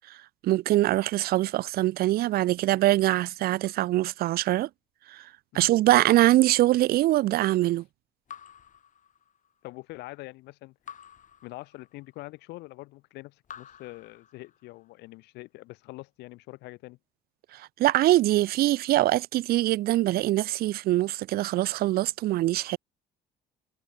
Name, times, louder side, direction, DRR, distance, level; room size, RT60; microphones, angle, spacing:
voice 1, 0.4-4.7 5.1-5.2 5.5-7.8 17.5-22.8, right 15 dB, 65° right, 0.5 m, -23 dB
Raindrop / Drip, 8.3-9.7 10.9-12.2 13.4-14.9, left 8 dB, 50° left, 7.2 m, -49 dB
voice 2, 9.6-10.7 11.4-17.0, left 20 dB, 90° left, 1.6 m, -44 dB
cardioid pair, 110°, 17 cm